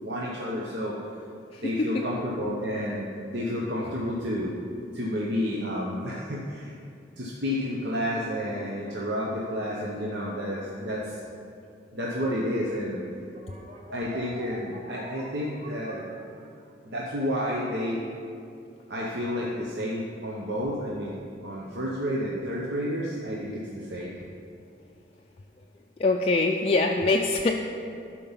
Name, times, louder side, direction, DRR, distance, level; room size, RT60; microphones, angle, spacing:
voice 1, 0.0-1.0 1.6-4.6 4.9-6.7 7.2-11.2 11.9-13.0 13.9-16.1 16.8-18.0 18.9-24.1, equal, 70° right, -4 dB, 1.0 m, -30 dB
voice 2, 1.5-2.0 26.0-27.5, left 3 dB, 35° left, 1 dB, 0.4 m, -24 dB
sound 1, 13.3-16.9, right 1 dB, 40° right, 1.2 m, -44 dB
11.5 x 4.6 x 5.7 m, 2.5 s
head